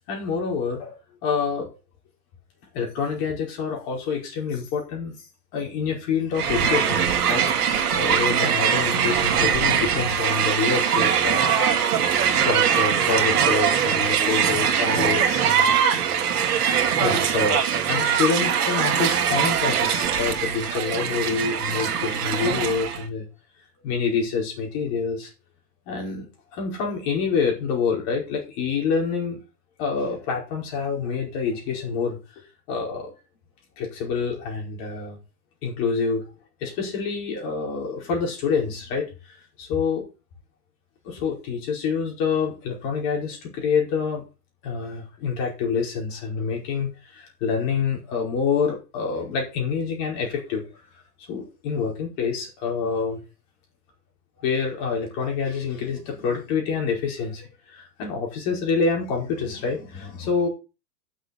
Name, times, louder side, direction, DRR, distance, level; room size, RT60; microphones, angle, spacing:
voice 1, 0.1-1.7 2.7-5.2 5.5-7.4 7.9-11.5 12.0-16.1 17.0-23.2 23.8-25.3 25.9-26.2 26.5-29.4 29.8-33.1 33.8-35.2 35.6-36.2 36.6-40.0 41.0-44.2 44.6-50.7 51.3-53.2 54.4-60.5, left 5 dB, 35° left, 0 dB, 5.0 m, -27 dB
Crowd, 6.3-23.0, right 8 dB, 65° right, 1.9 m, -22 dB
7.8 x 6.7 x 7.9 m, 0.31 s
hypercardioid pair, 150°, 49 cm